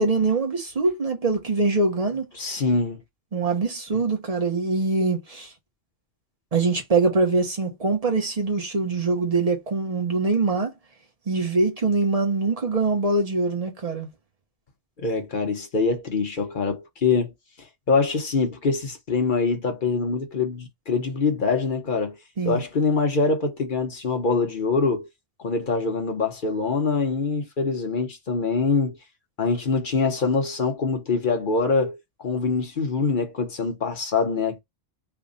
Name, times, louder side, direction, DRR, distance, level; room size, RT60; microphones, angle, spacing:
voice 1, 0.0-2.3 3.3-5.5 6.5-10.7 11.3-14.1 22.4-22.6, right 3 dB, 35° right, 1.0 m, -23 dB
voice 2, 2.4-3.0 15.0-17.3 17.9-22.2 22.5-25.1 25.4-29.0 29.4-34.6, left 4 dB, 50° left, 1.0 m, -24 dB
3.5 x 2.2 x 3.8 m
omnidirectional pair, 1.2 m